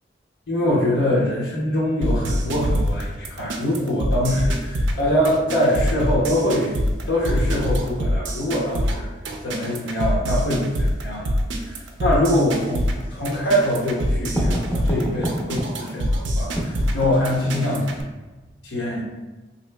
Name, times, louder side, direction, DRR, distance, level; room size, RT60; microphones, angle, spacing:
voice 1, 0.5-6.7 7.1-9.1 9.4-11.3 12.0-12.8 13.1-17.9 18.6-19.0, left 1 dB, 85° left, -6 dB, 0.7 m, -23 dB
sound 1, 2.0-18.0, equal, 75° right, 0.4 m, -24 dB
Writing, 12.1-18.1, equal, 10° left, 0.6 m, -31 dB
3.7 x 2.8 x 2.2 m, 1.1 s
head